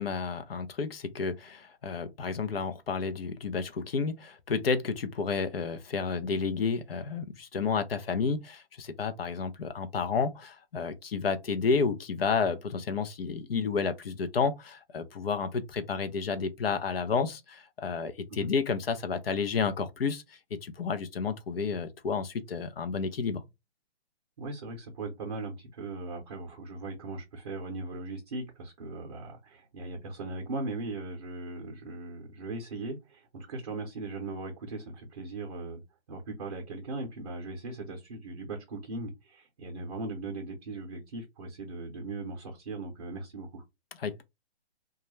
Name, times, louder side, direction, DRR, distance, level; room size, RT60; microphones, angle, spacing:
voice 1, 0.0-20.2 20.6-23.4 44.0-44.2, left 5 dB, 65° left, 0.6 m, -31 dB
voice 2, 24.4-35.8 36.1-43.6, right 2 dB, 35° right, 0.6 m, -39 dB
2.3 x 2.1 x 3.0 m
hypercardioid pair, 165°, 32 cm